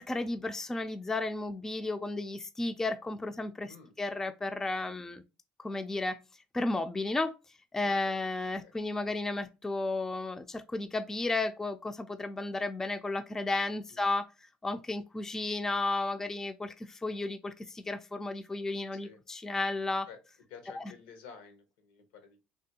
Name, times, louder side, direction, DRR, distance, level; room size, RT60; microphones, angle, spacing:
voice 1, 0.0-5.2 5.6-6.2 6.5-7.3 7.7-14.3 14.6-20.1 20.8-20.9, left 2 dB, 10° left, 0.3 m, -33 dB
voice 2, 20.5-22.4, left 6 dB, 85° left, 0.8 m, -51 dB
3.3 x 2.2 x 2.7 m
supercardioid pair, 100°, 4 cm